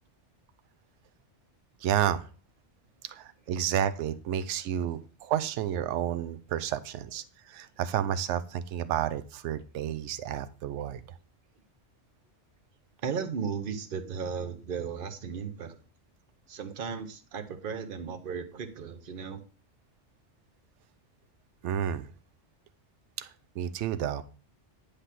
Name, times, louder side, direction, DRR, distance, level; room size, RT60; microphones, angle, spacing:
voice 1, 1.8-2.3 3.1-11.0 21.6-22.1 23.2-23.3 23.6-24.2, right 10 dB, 80° right, 13 dB, 0.9 m, -31 dB
voice 2, 13.0-15.8 16.5-19.4, right 6 dB, 50° right, 8 dB, 1.0 m, -35 dB
9.7 x 3.4 x 5.8 m, 0.38 s
omnidirectional pair, 1.2 m